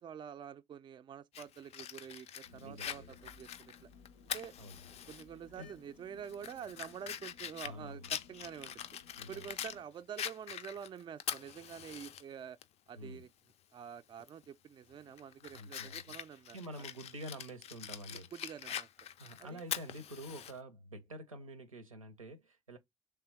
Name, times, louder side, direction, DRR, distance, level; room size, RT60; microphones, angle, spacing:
voice 1, 0.0-3.9 4.2-4.5 5.1-8.9 9.3-12.6 12.9-13.3 13.7-16.6 18.1-18.9 19.4-19.6, right 8 dB, 30° right, 0.4 m, -47 dB
Fire, 1.3-5.2 5.6-5.7 6.2-9.8 10.2-12.2 12.6-12.7 14.2-14.5 14.9-20.5, left 9 dB, 40° left, 0.4 m, -43 dB
sound 1, 2.4-9.8, left 6 dB, 70° left, 0.7 m, -60 dB
voice 2, 2.5-3.3 4.6-5.0 5.6-5.7 7.6-8.2 9.2-9.5 12.9-13.3 15.5-16.2 16.5-18.6 19.2-22.8, right 1 dB, 90° right, 0.6 m, -48 dB
3.4 x 3.3 x 4.5 m
figure-of-eight pair, 50°, 17 cm